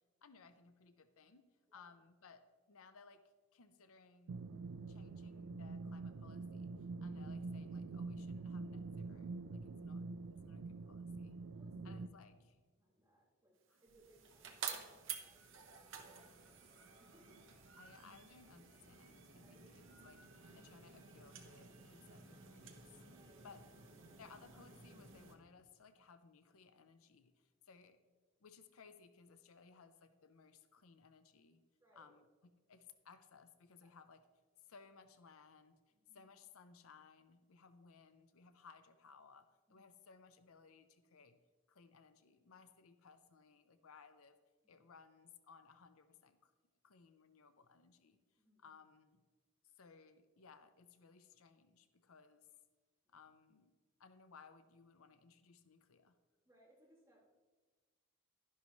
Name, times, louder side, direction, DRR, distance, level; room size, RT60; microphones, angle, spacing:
voice 1, 0.2-1.5 1.7-3.2 3.5-4.5 4.9-10.1 10.3-11.4 11.8-12.6 13.7-13.8 17.8-22.9 23.4-23.6 24.2-28.0 28.4-31.6 31.9-34.2 34.6-35.8 36.1-41.4 41.7-44.4 44.7-46.5 46.8-48.2 48.6-49.2 49.6-52.5 53.1-53.7 54.0-56.2, left 5 dB, 75° left, 10 dB, 0.6 m, -62 dB
sound 1, 4.3-12.1, right 3 dB, 80° right, 0.4 m, -46 dB
voice 2, 11.4-12.4 12.8-15.8 16.4-17.4 19.4-19.8 23.1-23.6 31.8-32.1 33.8-33.9 35.9-36.2 39.7-39.9 44.6-44.8 48.4-48.7 53.0-53.2 56.4-57.4, right 1 dB, 15° right, -7 dB, 3.2 m, -70 dB
sound 2, 13.7-25.4, right 7 dB, 60° right, 1.2 m, -52 dB
11.5 x 11.0 x 3.1 m, 1.4 s
head